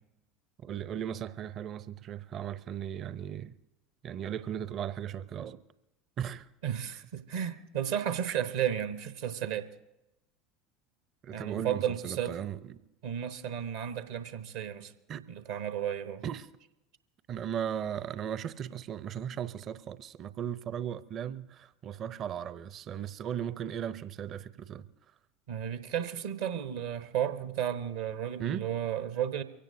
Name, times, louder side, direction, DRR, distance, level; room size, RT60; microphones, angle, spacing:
voice 1, 0.6-3.6 4.0-5.6 6.2-6.5 8.3-8.4 11.2-12.8 15.1-15.3 16.2-16.5 17.3-24.9 28.4-28.7, right 9 dB, 40° right, 0.7 m, -37 dB
voice 2, 6.6-9.7 11.3-12.4 13.0-14.9 15.3-16.2 25.5-29.4, right 9 dB, 65° right, 1.0 m, -33 dB
24.0 x 16.5 x 2.7 m
figure-of-eight pair, 70°, 0 cm